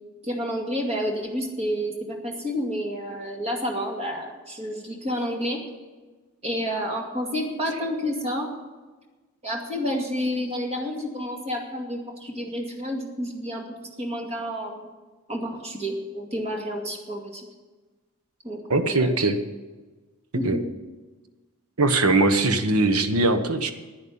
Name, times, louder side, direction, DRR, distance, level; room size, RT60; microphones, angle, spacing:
voice 1, 0.2-5.6 6.4-8.5 9.4-13.6 14.0-14.9 15.3-17.5 18.4-19.1 20.3-20.7 22.0-22.4, equal, 30° right, 2 dB, 2.2 m, -30 dB
voice 2, 18.7-19.4 20.4-20.6 21.8-23.7, right 2 dB, 85° right, 9 dB, 1.2 m, -21 dB
11.0 x 10.0 x 8.7 m, 1.3 s
head